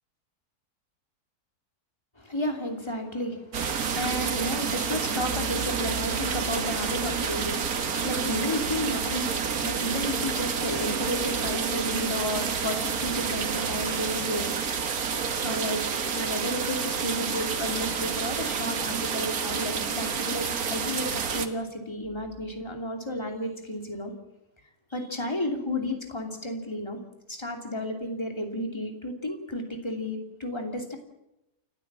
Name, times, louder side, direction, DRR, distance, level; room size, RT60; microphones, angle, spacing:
voice 1, 2.2-14.5 15.4-24.1 24.9-27.0 27.3-31.0, left 1 dB, 15° left, 3 dB, 2.9 m, -32 dB
sound 1, 3.5-21.5, right 6 dB, 70° right, 1.8 m, -29 dB
29.0 x 12.5 x 7.5 m, 0.91 s
omnidirectional pair, 1.6 m